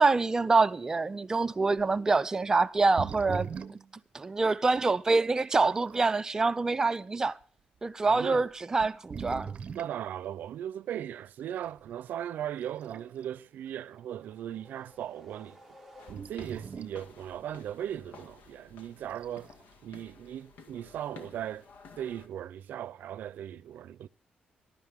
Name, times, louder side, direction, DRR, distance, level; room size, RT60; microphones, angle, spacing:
voice 1, 0.0-3.8 4.1-7.4 7.8-9.5, right 3 dB, 20° right, 0.6 m, -26 dB
sound 1, 1.8-1.9 2.8-3.9 4.8-4.9 5.6-6.2 6.9-7.2 8.0-8.1 8.7-10.0 11.6-11.8 12.6-13.3 13.7-13.8 16.1-17.0 19.1-19.6, right 6 dB, 40° right, 0.9 m, -40 dB
voice 2, 8.1-8.5 9.7-15.6 16.1-19.5 19.8-21.7 22.0-24.1, right 10 dB, 75° right, 0.6 m, -38 dB
sound 2, 13.6-16.7, equal, ahead, 1.7 m, -56 dB
sound 3, 16.0-22.3, left 4 dB, 85° left, 2.0 m, -53 dB
20.0 x 12.0 x 3.6 m
wide cardioid pair, 170°, 3 cm